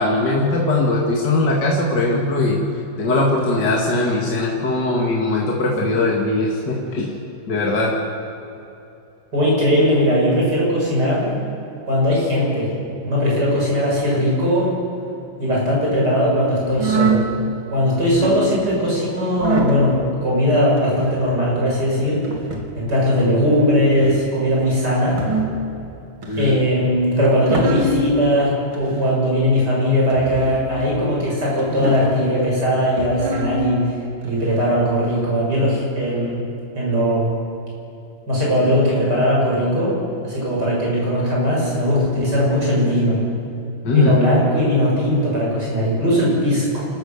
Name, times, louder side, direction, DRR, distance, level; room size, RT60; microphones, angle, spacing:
voice 1, 0.0-2.6 3.0-7.1 7.5-7.9 26.3-26.6 43.8-44.1, left 2 dB, 55° left, -2 dB, 2.8 m, -20 dB
voice 2, 9.3-11.3 11.8-12.7 13.0-14.7 15.4-22.2 22.8-25.2 26.4-33.8 34.2-36.4 36.8-37.3 38.3-43.2 43.9-46.8, equal, 50° right, -5 dB, 7.5 m, -19 dB
sound 1, 16.7-17.3 18.0-18.4 19.3-19.8 20.8-21.2 22.2-22.7 23.9-24.3 25.0-25.6 26.2-26.7 27.2-28.0 28.7-29.2 30.1-30.7 31.6-32.2 32.9-33.5 34.2-34.7 35.5-35.7, right 3 dB, 75° right, 3.1 m, -25 dB
28.5 x 14.0 x 6.8 m, 2.8 s
omnidirectional pair, 2.3 m